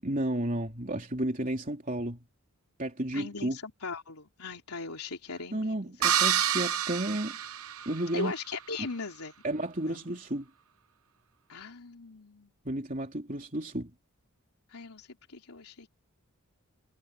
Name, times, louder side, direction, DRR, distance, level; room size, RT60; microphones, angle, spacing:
voice 1, 0.0-2.2 2.8-3.6 5.5-7.4 7.9-8.3 9.4-10.5 12.7-13.9, right 1 dB, 35° right, 3.5 m, -32 dB
voice 2, 3.1-5.8 8.1-9.3 9.8-10.2 11.5-12.5 14.7-15.9, left 3 dB, 85° left, 3.5 m, -39 dB
sound 1, 6.0-8.2, right 9 dB, 70° right, 1.1 m, -28 dB
head